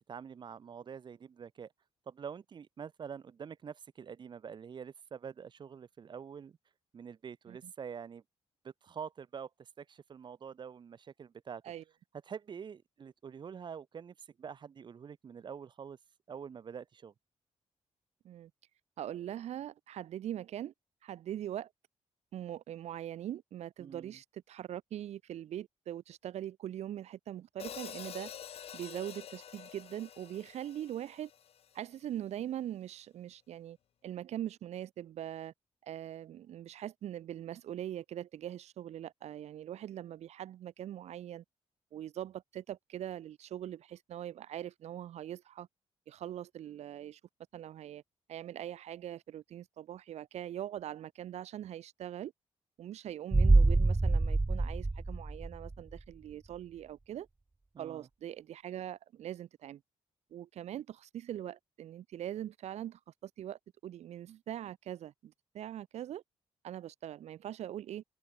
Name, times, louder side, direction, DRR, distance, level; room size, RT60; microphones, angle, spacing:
voice 1, 0.1-1.7 2.1-6.6 6.9-8.2 8.6-11.6 12.3-16.0 16.3-17.1 23.8-24.2 57.7-58.1, right 7 dB, 45° right, 3.4 m, -46 dB
voice 2, 19.0-20.7 21.0-21.7 22.3-28.3 28.7-31.3 31.7-33.8 34.0-35.5 35.8-41.4 41.9-45.7 46.1-47.2 47.5-48.0 48.3-52.3 52.8-57.3 57.8-59.8 60.3-66.2 66.6-68.0, right 11 dB, 80° right, 4.0 m, -42 dB
Hi-hat, 27.6-31.8, left 9 dB, 65° left, 6.7 m, -47 dB
sound 1, 53.3-56.0 56.3-56.4, right 2 dB, 15° right, 1.2 m, -26 dB
cardioid pair, 140°, 11 cm